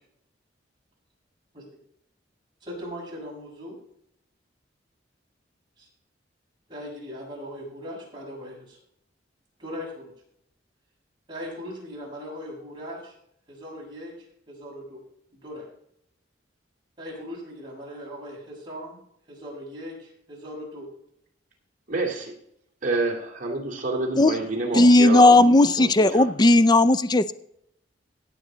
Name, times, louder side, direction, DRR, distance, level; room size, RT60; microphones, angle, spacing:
voice 1, 2.6-3.8 5.8-5.9 6.7-8.8 9.6-10.1 11.3-13.1 13.5-14.1 14.5-15.0 15.3-15.7 17.0-19.0 19.3-20.9, equal, 25° right, -4 dB, 5.5 m, -39 dB
voice 2, 21.9-22.3 22.8-25.4 25.8-26.3, right 3 dB, 45° right, 1 dB, 2.6 m, -28 dB
voice 3, 24.7-27.3, left 2 dB, 20° left, 14 dB, 0.4 m, -16 dB
16.5 x 7.7 x 3.9 m, 0.73 s
head